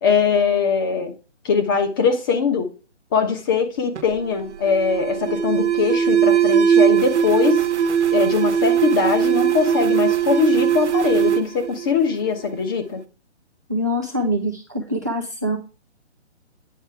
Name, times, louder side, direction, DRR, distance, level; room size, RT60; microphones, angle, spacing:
voice 1, 0.0-1.1 1.4-2.7 3.1-7.7 8.1-13.0, left 6 dB, 20° left, 1.1 m, -21 dB
Alarm, 3.9-12.5, right 9 dB, 75° right, 1.1 m, -20 dB
voice 2, 13.7-15.6, equal, 15° right, 0.4 m, -24 dB
9.4 x 4.6 x 4.6 m
hypercardioid pair, 165°, 35 cm